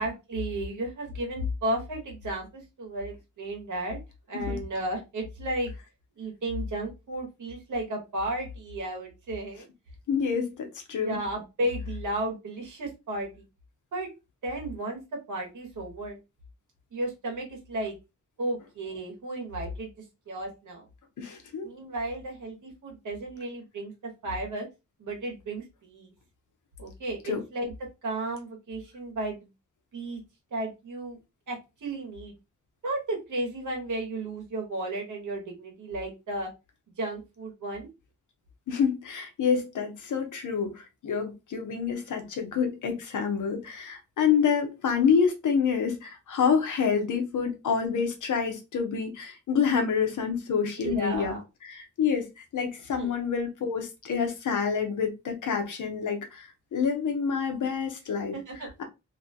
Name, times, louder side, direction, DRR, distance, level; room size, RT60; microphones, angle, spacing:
voice 1, 0.0-4.0 4.3-5.7 6.1-9.6 11.0-13.4 13.9-14.1 14.4-15.0 15.3-16.2 16.9-17.9 18.4-20.8 21.6-24.7 25.0-26.1 26.8-27.7 28.0-29.4 29.9-30.2 30.5-31.2 31.5-32.3 32.8-36.5 37.0-37.9 50.8-51.4 53.0-53.1 58.3-58.7, right 1 dB, 85° right, 1.2 m, -33 dB
voice 2, 10.1-11.2 21.2-21.6 27.3-27.4 38.7-51.3 51.6-52.3 52.5-58.4, left 6 dB, 80° left, 0.8 m, -27 dB
2.7 x 2.4 x 2.7 m
cardioid pair, 45°, 30 cm